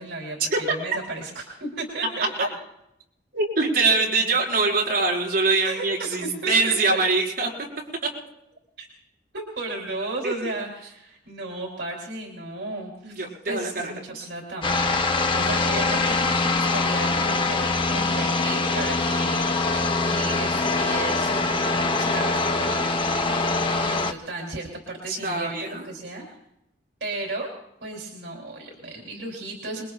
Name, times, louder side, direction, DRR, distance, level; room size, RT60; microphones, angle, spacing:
voice 1, 0.0-0.4 0.7-2.5 5.6-7.0 8.8-8.9 9.3-14.7 15.3-23.4 23.8-26.4 27.0-27.5 27.8-29.8, right 2 dB, 75° right, 0 dB, 3.2 m, -34 dB
voice 2, 3.3-7.5 10.2-10.3 13.0-14.3 19.7-19.8 20.6-20.9 25.1-25.9, right 3 dB, 55° right, -3 dB, 5.0 m, -24 dB
sound 1, 14.6-24.1, left 3 dB, 30° left, 0.9 m, -23 dB
28.0 x 21.5 x 2.4 m, 0.82 s
head